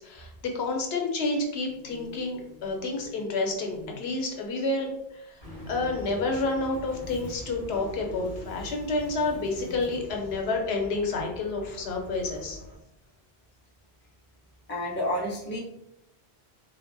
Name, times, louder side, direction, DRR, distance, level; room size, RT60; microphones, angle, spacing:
voice 1, 0.0-5.3 5.7-12.6, left 3 dB, 80° left, 2 dB, 0.8 m, -29 dB
sound 1, 1.7-3.2 3.5-4.0 5.4-10.4 11.3-11.4 11.9-12.6, left 2 dB, 55° right, 1.8 m, -47 dB
sound 2, 5.4-12.8, equal, 35° right, 1.4 m, -45 dB
voice 2, 14.7-15.6, left 1 dB, 15° left, -4 dB, 0.4 m, -30 dB
3.3 x 2.1 x 2.5 m, 0.81 s
omnidirectional pair, 1.1 m